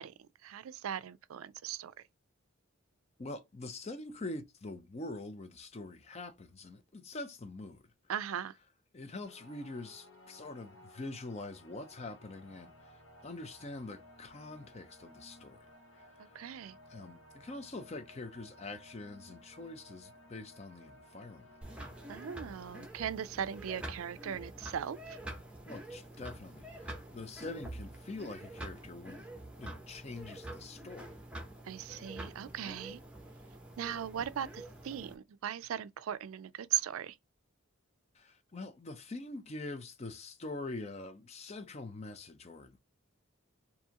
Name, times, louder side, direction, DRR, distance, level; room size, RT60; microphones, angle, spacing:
voice 1, 0.0-1.9 8.1-8.5 16.2-16.8 22.1-25.2 31.6-33.0 33.8-37.2, right 9 dB, 80° right, 0.4 m, -38 dB
voice 2, 3.2-7.8 8.9-15.7 15.9-16.4 16.9-21.6 25.7-29.3 29.6-31.1 38.1-42.8, left 2 dB, 30° left, 0.5 m, -44 dB
sound 1, 9.2-22.9, left 1 dB, 65° left, 1.1 m, -58 dB
sound 2, 21.6-35.1, right 1 dB, 5° right, 0.8 m, -47 dB
4.6 x 2.7 x 2.9 m
head